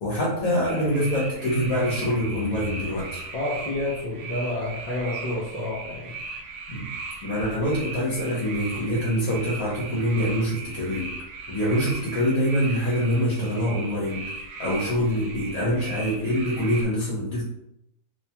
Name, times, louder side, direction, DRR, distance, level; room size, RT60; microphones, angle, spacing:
voice 1, 0.0-3.2 6.7-6.9 7.2-11.1 11.5-14.2 14.6-17.4, equal, 80° left, -5 dB, 1.2 m, -25 dB
sound 1, 0.6-16.9, right 3 dB, 65° right, 1.0 m, -38 dB
voice 2, 3.3-6.2, left 2 dB, 60° left, -4 dB, 0.4 m, -29 dB
2.8 x 2.2 x 2.7 m, 0.79 s
omnidirectional pair, 1.5 m